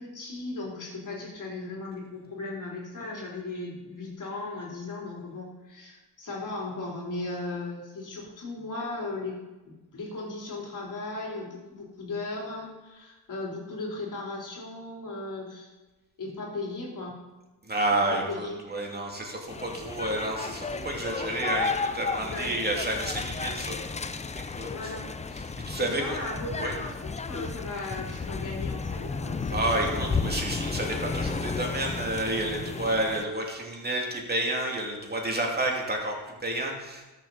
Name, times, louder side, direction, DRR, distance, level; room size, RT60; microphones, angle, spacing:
voice 1, 0.0-9.4 9.9-15.7 16.2-17.1 18.1-18.6 22.2-22.6 24.7-25.1 25.6-30.1, left 2 dB, 45° left, -3 dB, 3.8 m, -37 dB
voice 2, 17.6-24.9 25.3-26.2 26.6-26.7 29.5-37.0, right 1 dB, 20° right, 0 dB, 2.7 m, -30 dB
sound 1, 19.5-33.3, left 4 dB, 15° left, 0.5 m, -33 dB
13.0 x 6.9 x 4.1 m, 1.1 s
supercardioid pair, 65°, 43 cm